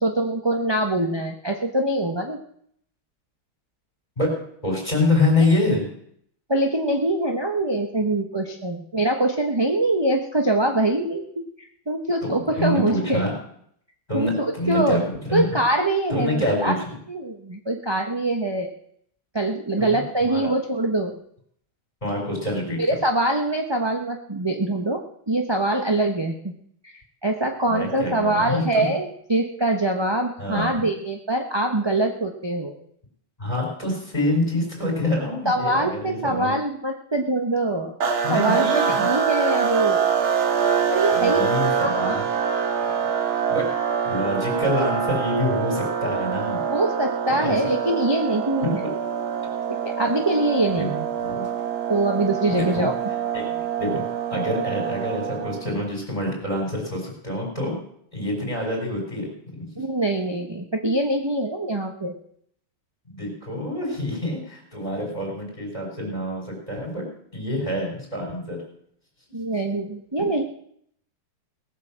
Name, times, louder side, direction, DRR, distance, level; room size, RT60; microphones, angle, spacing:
voice 1, 0.0-2.4 6.5-11.2 11.9-13.2 14.1-15.0 15.3-16.7 17.1-18.7 19.3-21.1 22.8-26.5 26.8-26.9 27.2-32.7 35.4-38.0 38.3-40.1 40.9-41.5 41.8-42.3 46.7-48.8 50.0-51.0 51.9-52.9 59.8-62.1 69.3-70.4, right 2 dB, 20° right, 2 dB, 0.8 m, -24 dB
voice 2, 4.6-5.8 12.2-12.3 12.6-13.3 14.1-15.5 16.1-17.0 19.8-20.5 22.0-22.8 27.6-28.8 30.4-30.9 33.4-36.5 38.2-39.1 41.1-42.2 43.3-43.7 44.0-46.6 47.4-47.6 48.6-48.9 50.8-50.9 51.2-51.4 52.5-52.9 53.3-54.0 54.3-57.8 58.1-59.8 63.1-67.1 67.3-68.6, left 1 dB, 20° left, -3 dB, 5.2 m, -26 dB
sound 1, 38.0-55.9, right 7 dB, 75° right, 2.3 m, -25 dB
18.5 x 8.4 x 7.5 m, 0.67 s
omnidirectional pair, 2.3 m